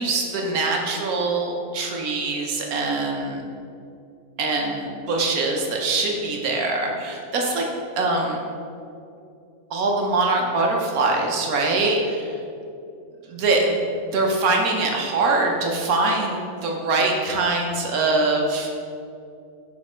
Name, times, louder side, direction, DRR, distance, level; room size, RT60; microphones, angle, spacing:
voice 1, 0.0-3.4 4.4-7.7 8.0-8.4 9.7-12.4 13.3-18.7, right 3 dB, 70° right, 0 dB, 1.3 m, -23 dB
6.2 x 4.1 x 4.9 m, 2.6 s
omnidirectional pair, 1.6 m